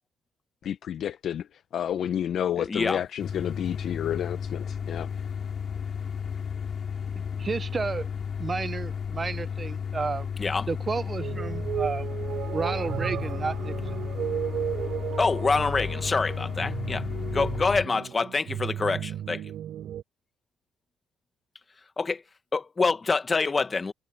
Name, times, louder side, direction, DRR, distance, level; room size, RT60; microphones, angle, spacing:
voice 1, 0.6-1.4 1.7-5.1, left 10 dB, 70° left, 0.9 m, -30 dB
voice 2, 2.6-3.0 10.4-10.7 15.2-17.1 17.3-19.4 22.0-22.2 22.5-23.9, left 4 dB, 30° left, 1.9 m, -26 dB
sound 1, 3.2-17.9, left 7 dB, 50° left, 3.8 m, -33 dB
voice 3, 7.1-8.1 8.4-10.3 10.7-12.1 12.5-13.9, right 4 dB, 35° right, 0.9 m, -32 dB
sound 2, 11.2-20.0, right 10 dB, 75° right, 4.3 m, -34 dB
cardioid pair, 90°, 0 cm